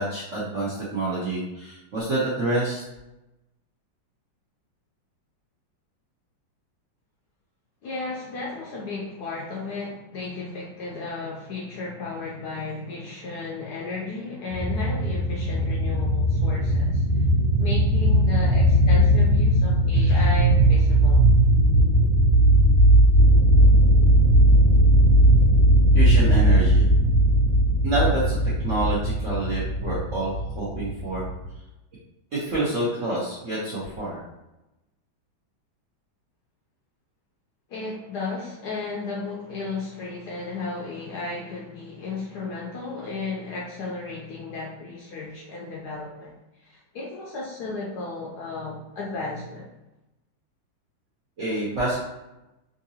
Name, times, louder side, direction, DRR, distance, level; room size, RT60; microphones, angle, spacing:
voice 1, 0.0-2.8 25.9-26.9 27.8-31.3 32.4-34.2 51.4-52.0, right 2 dB, 65° right, -8 dB, 0.7 m, -27 dB
voice 2, 7.8-17.2 17.6-21.2 37.7-49.7, left 3 dB, 70° left, -3 dB, 0.9 m, -34 dB
sound 1, 14.5-31.5, right 1 dB, 90° right, 1.5 m, -18 dB
3.7 x 2.6 x 2.7 m, 0.96 s
omnidirectional pair, 2.2 m